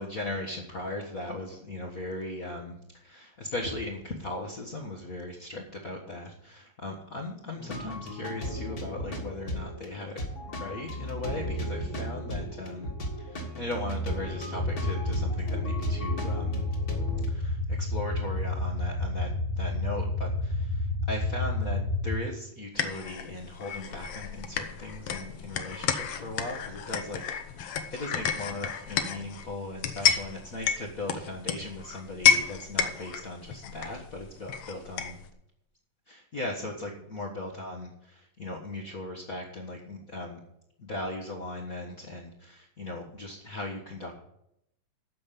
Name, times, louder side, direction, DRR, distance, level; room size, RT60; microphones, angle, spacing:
voice 1, 0.0-10.2 10.5-16.6 17.3-27.2 27.5-35.2 36.1-40.4 40.8-44.1, left 2 dB, 50° left, -2 dB, 1.0 m, -38 dB
sound 1, 7.6-17.3, equal, 35° left, 1.7 m, -36 dB
sound 2, 14.5-22.1, left 2 dB, 75° right, 4.0 m, -30 dB
sound 3, 22.7-35.3, left 8 dB, 80° left, 1.4 m, -31 dB
13.5 x 5.4 x 8.4 m, 0.78 s
omnidirectional pair, 4.0 m